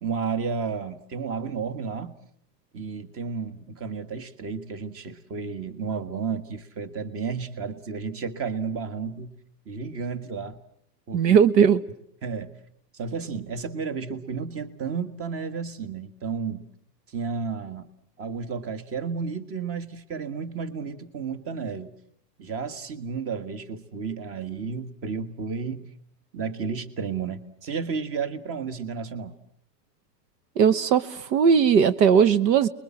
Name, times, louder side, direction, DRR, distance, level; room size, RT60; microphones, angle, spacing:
voice 1, 0.0-2.1 2.7-9.3 9.7-10.6 11.1-11.4 12.2-12.5 12.9-16.7 17.1-17.9 18.2-21.9 22.4-25.9 26.3-29.3, right 5 dB, 25° right, 12 dB, 1.7 m, -32 dB
voice 2, 11.1-11.8 30.6-32.7, right 7 dB, 80° right, 14 dB, 1.4 m, -18 dB
29.5 x 22.0 x 7.3 m, 0.68 s
supercardioid pair, 140°, 50 cm